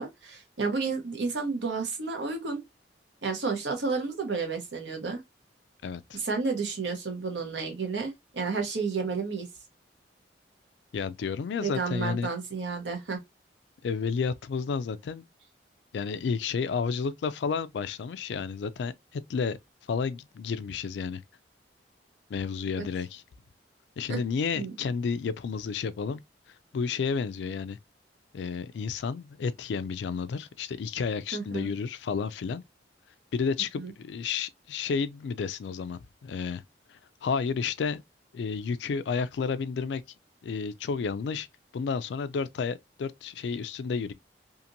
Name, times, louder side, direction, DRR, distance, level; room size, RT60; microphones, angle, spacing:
voice 1, 0.0-2.6 3.2-5.2 6.1-9.5 11.6-13.2 24.1-24.2 24.5-24.7 31.3-31.7 33.8-33.9, right 4 dB, 85° right, 0.9 m, -31 dB
voice 2, 5.8-6.2 10.9-12.3 13.8-15.3 15.9-19.6 19.9-21.2 22.3-23.2 24.0-26.2 26.7-27.8 28.3-32.6 33.3-36.6 36.9-38.0 38.3-40.0 40.4-41.5 41.7-44.1, left 5 dB, 80° left, 0.3 m, -31 dB
2.8 x 2.5 x 2.5 m
head